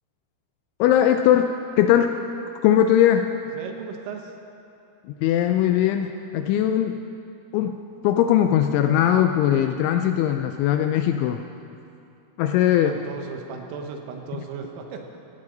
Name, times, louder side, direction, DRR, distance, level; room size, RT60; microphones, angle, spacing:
voice 1, 0.8-2.2 2.6-3.3 5.0-7.0 7.5-7.8 8.0-11.4 12.4-12.9, left 10 dB, 85° left, 6 dB, 2.7 m, -20 dB
voice 2, 3.5-4.4 12.5-15.0, right 6 dB, 85° right, 4 dB, 3.8 m, -36 dB
17.0 x 16.5 x 3.9 m, 2.6 s
omnidirectional pair, 5.8 m